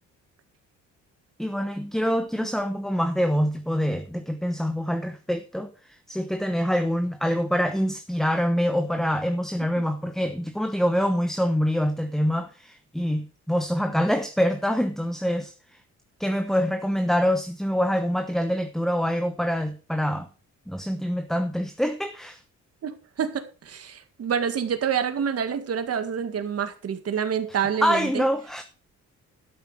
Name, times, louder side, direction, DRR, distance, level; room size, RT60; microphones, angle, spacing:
voice 1, 1.4-15.8 16.2-20.3 20.7-22.4 27.8-28.6, equal, ahead, 1.0 m, -25 dB
voice 2, 22.8-28.2, right 7 dB, 55° right, 1.7 m, -27 dB
12.5 x 6.9 x 4.9 m
cardioid pair, 90°, 30 cm